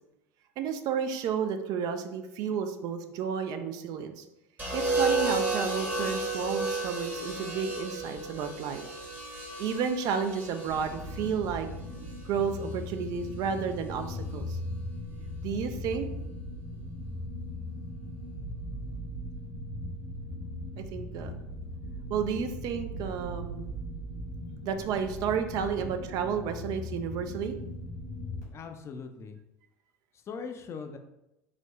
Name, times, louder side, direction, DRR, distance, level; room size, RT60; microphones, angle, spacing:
voice 1, 0.6-4.2 4.7-8.8 9.6-11.7 12.2-14.6 15.4-16.1 20.8-21.3 22.1-23.7 24.6-27.6, right 7 dB, 50° right, 7 dB, 0.4 m, -32 dB
sound 1, 4.6-12.7 14.0-14.4, right 3 dB, 20° right, 0.9 m, -33 dB
sound 2, 10.7-28.4, left 1 dB, 85° left, 1.4 m, -39 dB
voice 2, 28.5-29.4 30.1-31.0, left 5 dB, 35° left, 6 dB, 0.4 m, -40 dB
3.6 x 2.0 x 3.2 m, 0.88 s
hypercardioid pair, 70°, 8 cm